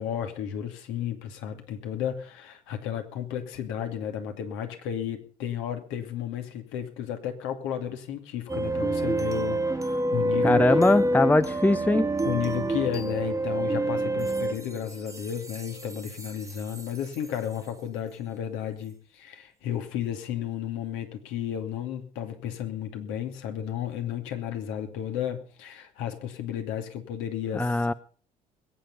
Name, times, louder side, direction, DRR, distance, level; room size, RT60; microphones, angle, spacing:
voice 1, 0.0-10.6 12.2-27.9, left 9 dB, 65° left, 6 dB, 2.6 m, -33 dB
sound 1, 8.5-17.4, right 1 dB, 15° right, 1.5 m, -28 dB
voice 2, 10.4-12.1 27.5-27.9, left 2 dB, 10° left, 15 dB, 0.7 m, -21 dB
21.5 x 9.3 x 5.5 m, 0.41 s
hypercardioid pair, 55°, 21 cm